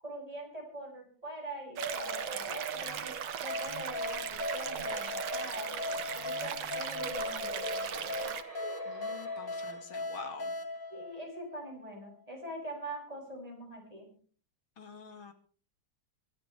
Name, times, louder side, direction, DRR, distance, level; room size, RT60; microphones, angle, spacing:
voice 1, 0.0-3.1 3.4-8.3 10.9-14.1, right 1 dB, 15° right, -1 dB, 7.3 m, -44 dB
sound 1, 1.8-3.9 4.4-6.6 6.9-9.8 10.4-10.5 10.8-10.9, right 3 dB, 55° right, 6.7 m, -42 dB
sound 2, 1.8-8.4, right 9 dB, 90° right, 2.0 m, -39 dB
sound 3, 3.5-11.9, left 2 dB, 40° left, 2.3 m, -39 dB
voice 2, 8.9-10.5 14.8-15.3, left 4 dB, 70° left, 6 dB, 2.9 m, -46 dB
25.5 x 14.0 x 3.4 m, 0.43 s
omnidirectional pair, 2.3 m